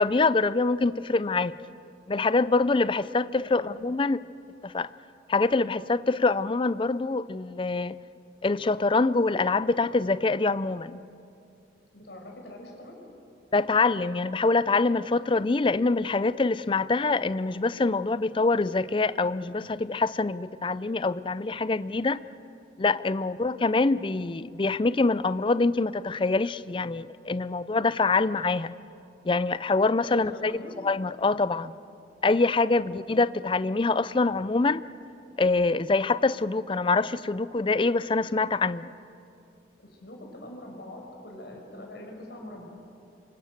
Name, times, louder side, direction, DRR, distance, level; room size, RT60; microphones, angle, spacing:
voice 1, 0.0-1.5 2.1-4.2 4.6-4.9 5.3-8.0 8.4-11.0 13.5-22.2 22.8-28.7 29.2-31.8 32.2-34.8 35.4-38.9, left 3 dB, 30° left, 0.5 m, -25 dB
voice 2, 11.9-13.0 30.0-30.7 39.8-42.7, left 1 dB, 65° left, 5.4 m, -44 dB
27.0 x 24.0 x 6.7 m
head